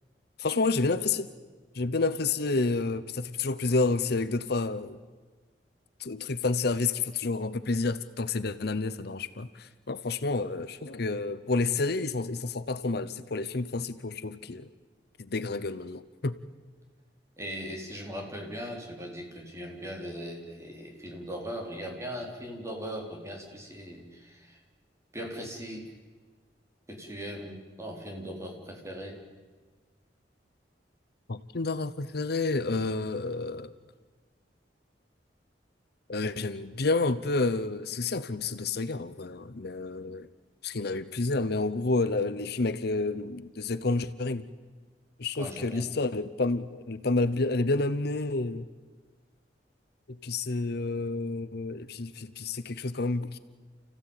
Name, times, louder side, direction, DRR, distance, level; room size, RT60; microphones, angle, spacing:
voice 1, 0.4-1.3 1.7-5.0 6.0-14.6 15.2-16.3 31.3-33.7 36.1-40.3 40.6-44.5 45.2-48.7 50.2-53.4, left 3 dB, 65° left, 13 dB, 0.9 m, -29 dB
voice 2, 17.4-24.6 25.1-25.9 26.9-29.2 45.4-45.9, equal, 15° right, 1 dB, 4.1 m, -39 dB
29.5 x 16.0 x 9.0 m, 1.4 s
head